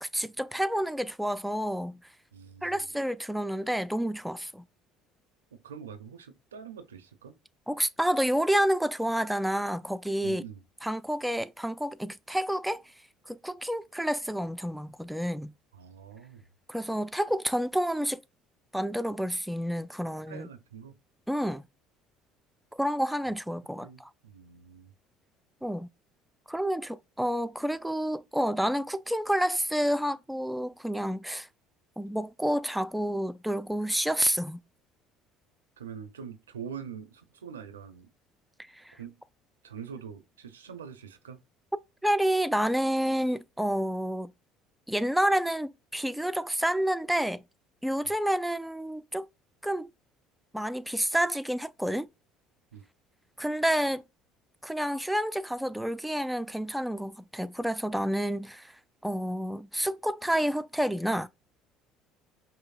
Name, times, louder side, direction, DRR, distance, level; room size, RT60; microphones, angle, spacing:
voice 1, 0.0-2.0 2.6-4.6 7.7-10.4 10.8-12.8 13.3-15.5 16.7-18.2 18.7-20.5 21.3-21.6 22.7-24.1 25.6-25.9 26.5-31.5 32.0-34.6 38.8-38.9 42.0-44.3 44.9-47.4 47.8-49.3 49.6-49.9 50.5-52.1 53.4-54.0 54.6-58.7 59.0-61.3, equal, 5° right, 0.4 m, -29 dB
voice 2, 2.3-2.9 5.5-7.4 10.2-10.6 15.7-16.5 20.3-21.0 23.8-24.9 35.8-38.1 39.0-39.2 39.6-41.4 52.7-52.9, right 7 dB, 90° right, 0.4 m, -44 dB
5.3 x 2.0 x 2.4 m
hypercardioid pair, 65°, 0 cm